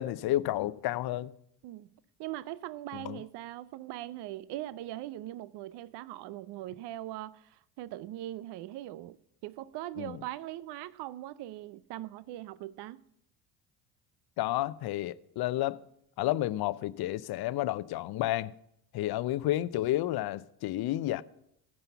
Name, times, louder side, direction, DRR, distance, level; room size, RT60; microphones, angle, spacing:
voice 1, 0.0-1.3 2.9-3.2 10.0-10.2 14.4-15.8 16.2-18.5 18.9-21.2, left 15 dB, 50° left, 0.7 m, -31 dB
voice 2, 2.2-9.2 9.4-13.0, right 14 dB, 55° right, 0.6 m, -41 dB
15.0 x 5.5 x 6.9 m
hypercardioid pair, 65°, 49 cm